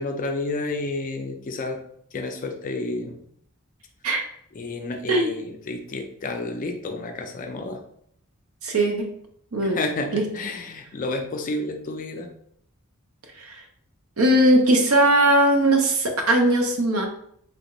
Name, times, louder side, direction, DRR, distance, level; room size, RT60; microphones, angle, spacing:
voice 1, 0.0-1.8 2.1-3.2 4.5-7.8 9.6-12.3, left 2 dB, 35° left, 4 dB, 0.4 m, -30 dB
voice 2, 8.6-9.1 9.5-9.8 10.1-10.2 13.4-13.6 14.2-17.1, right 1 dB, 65° right, 3 dB, 0.7 m, -19 dB
3.3 x 2.4 x 2.9 m, 0.67 s
head